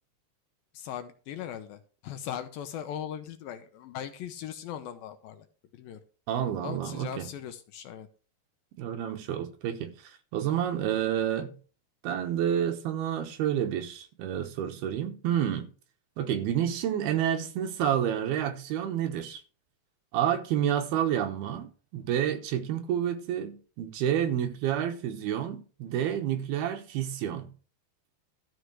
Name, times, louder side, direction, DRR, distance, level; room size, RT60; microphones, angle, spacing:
voice 1, 0.7-5.5 5.7-6.0 6.6-8.1, left 10 dB, 75° left, 2.4 m, -39 dB
voice 2, 6.3-7.3 8.8-11.5 12.0-15.7 16.2-19.4 20.1-27.5, right 10 dB, 75° right, 3.0 m, -29 dB
13.0 x 4.8 x 6.3 m
omnidirectional pair, 4.7 m